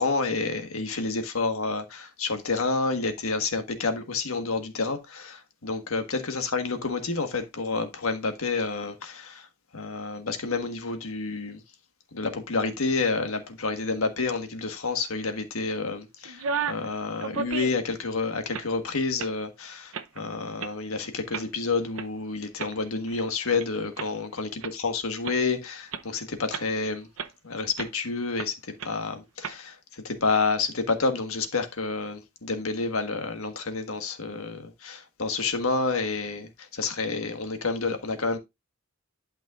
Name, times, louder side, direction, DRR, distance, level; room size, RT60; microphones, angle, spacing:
voice 1, 0.0-9.5 9.7-11.6 12.1-27.1 27.4-28.5 28.8-38.4, left 3 dB, 90° left, 1.5 m, -29 dB
sound 1, 16.3-16.9 17.2-17.9 18.4-18.7 19.2-19.4 19.9-20.2 20.6-20.7 21.3-21.5 22.0-22.1 22.6-23.7 24.0-24.1 24.6-24.7 25.2-25.4 25.9-26.0 26.5-26.8 27.2-27.3 27.8-28.0 28.4-28.5 28.8-28.9 29.4-29.6, right 6 dB, 75° right, 0.8 m, -33 dB
11.5 x 5.4 x 2.4 m
head